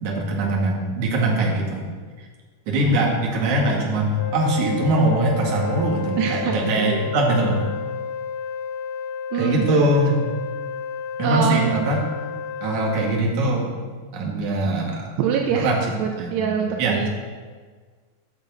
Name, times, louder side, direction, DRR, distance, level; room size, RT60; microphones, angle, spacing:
voice 1, 0.0-1.9 2.7-7.7 9.3-10.2 11.2-12.0 12.6-13.8 14.1-15.1 15.5-15.8 16.2-17.1, right 1 dB, 50° right, -1 dB, 2.7 m, -22 dB
Wind instrument woodwind instrument, 4.2-13.3, left 6 dB, 90° left, 2.9 m, -31 dB
voice 2, 6.2-7.0 9.3-9.6 11.2-11.8 15.2-17.1, right 7 dB, 80° right, 2 dB, 2.8 m, -24 dB
13.5 x 10.5 x 4.0 m, 1.5 s
omnidirectional pair, 5.0 m